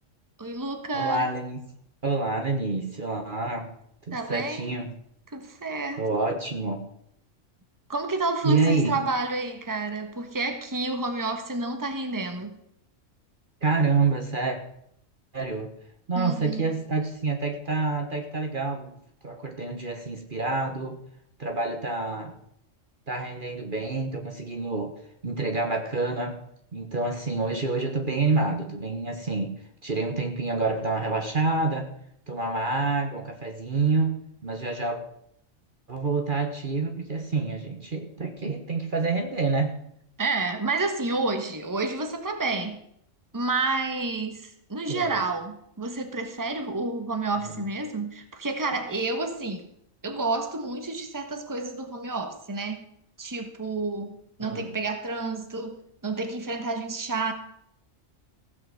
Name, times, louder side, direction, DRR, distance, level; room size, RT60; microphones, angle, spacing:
voice 1, 0.4-1.3 4.1-4.7 5.3-6.0 7.9-12.6 16.1-16.6 40.2-42.8 43.3-49.6 50.0-52.8 53.2-55.8 56.0-57.3, right 3 dB, 15° right, 6 dB, 1.3 m, -29 dB
voice 2, 0.9-1.6 2.0-3.7 4.1-4.9 6.0-6.8 8.4-8.9 13.6-14.6 15.3-15.7 16.1-19.0 19.2-21.0 21.4-22.3 23.1-24.9 25.2-26.4 26.7-29.5 29.8-31.9 32.3-34.1 34.4-35.0 35.9-39.8 44.9-45.2 47.6-47.7 54.4-54.7, right 3 dB, 45° right, 4 dB, 1.4 m, -27 dB
15.5 x 6.0 x 7.8 m, 0.73 s
omnidirectional pair, 1.3 m